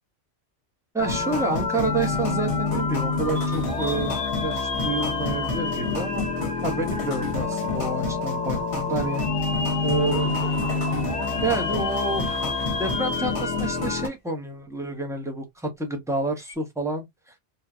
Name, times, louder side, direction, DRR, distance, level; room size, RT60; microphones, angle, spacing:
voice 1, 0.9-6.3 6.6-9.2 9.8-10.3 11.4-17.0, right 2 dB, 5° right, 0.7 m, -29 dB
sound 1, 1.0-14.1, left 3 dB, 75° left, 1.1 m, -27 dB
sound 2, 3.3-7.3 7.8-7.9 9.0-13.9 14.3-14.4 16.4-16.5, left 4 dB, 60° left, 0.3 m, -35 dB
Laughter / Crowd, 9.6-13.8, right 3 dB, 40° right, 1.0 m, -42 dB
3.1 x 2.2 x 2.3 m
omnidirectional pair, 1.2 m